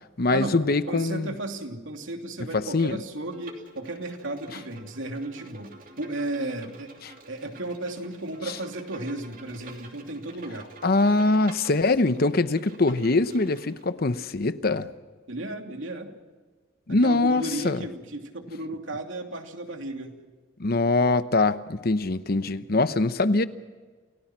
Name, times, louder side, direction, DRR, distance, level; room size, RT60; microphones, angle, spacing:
voice 1, 0.2-1.3 2.5-3.0 7.0-7.1 10.8-14.9 16.9-17.8 20.6-23.5, left 2 dB, 50° left, 12 dB, 0.9 m, -23 dB
voice 2, 0.9-5.7 6.0-6.9 7.3-10.7 15.3-16.1 16.9-20.1, right 2 dB, 90° right, 3 dB, 2.9 m, -34 dB
Bowed string instrument, 3.3-13.8, right 3 dB, 45° right, 3.1 m, -49 dB
28.5 x 17.5 x 6.1 m, 1.4 s
head